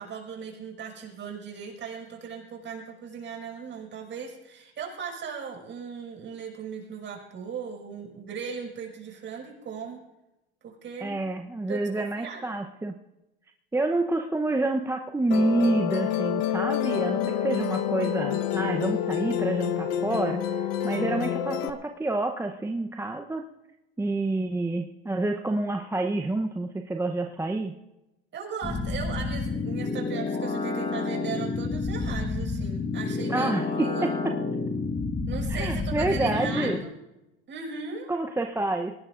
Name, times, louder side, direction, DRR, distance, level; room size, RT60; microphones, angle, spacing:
voice 1, 0.0-10.0 10.6-11.2 11.7-11.8 12.2-12.4 28.3-34.1 35.3-36.9 37.5-38.1, right 6 dB, 40° right, 0 dB, 5.9 m, -38 dB
voice 2, 11.0-13.0 13.7-23.5 24.0-27.7 33.3-34.4 35.5-36.8 38.1-38.9, right 2 dB, 10° right, 4 dB, 0.9 m, -28 dB
Musical instrument, 15.3-21.7, left 10 dB, 70° left, 1.2 m, -28 dB
sound 1, 28.6-36.8, left 3 dB, 20° left, 2.0 m, -29 dB
22.0 x 18.5 x 2.6 m, 0.96 s
hypercardioid pair, 95°, 30 cm